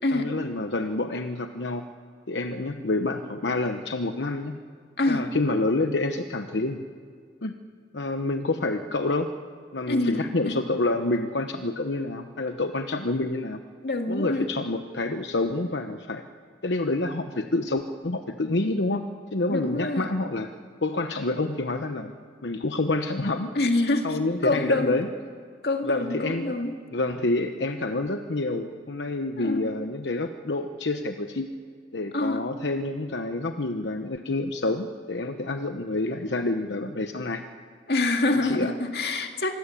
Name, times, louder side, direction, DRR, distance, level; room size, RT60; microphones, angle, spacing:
voice 1, 0.1-1.8 2.3-4.6 5.1-6.8 7.4-7.6 7.9-9.3 9.7-13.6 14.1-16.2 16.6-20.5 20.8-22.1 22.4-23.5 24.0-25.1 25.8-26.6 26.9-31.5 31.9-37.4 38.3-38.7, left 2 dB, 85° left, 7 dB, 1.0 m, -28 dB
voice 2, 5.0-5.3 9.9-10.6 13.8-14.5 19.5-20.1 23.5-25.0 25.6-26.7 29.4-29.7 32.1-32.5 37.9-39.6, left 2 dB, 65° left, 4 dB, 2.1 m, -26 dB
25.5 x 21.5 x 8.4 m, 2.1 s
head